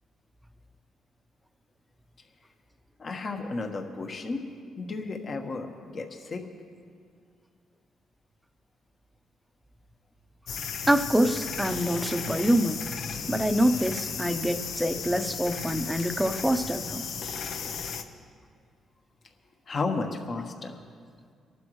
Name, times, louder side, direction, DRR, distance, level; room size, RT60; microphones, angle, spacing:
voice 1, 3.0-4.5 4.8-6.4 19.7-20.8, left 3 dB, 45° left, 4 dB, 1.3 m, -33 dB
sound 1, 10.5-18.0, left 6 dB, 70° left, 0.8 m, -35 dB
voice 2, 10.9-12.8 13.3-17.0, equal, 5° right, 8 dB, 0.8 m, -25 dB
24.0 x 12.0 x 3.2 m, 2.1 s
cardioid pair, 90°, 0 cm